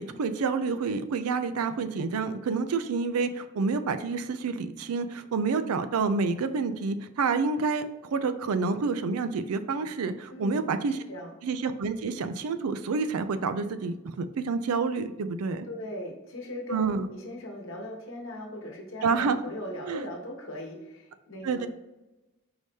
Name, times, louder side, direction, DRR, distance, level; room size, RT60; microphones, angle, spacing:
voice 1, 0.0-11.0 11.4-15.7 16.7-17.1 19.0-19.4 19.9-20.1 21.4-21.7, right 4 dB, 80° right, 10 dB, 0.4 m, -28 dB
voice 2, 10.3-10.6 11.1-11.3 15.7-21.7, left 1 dB, 60° left, 1 dB, 1.1 m, -39 dB
4.7 x 2.7 x 3.5 m, 1.0 s
head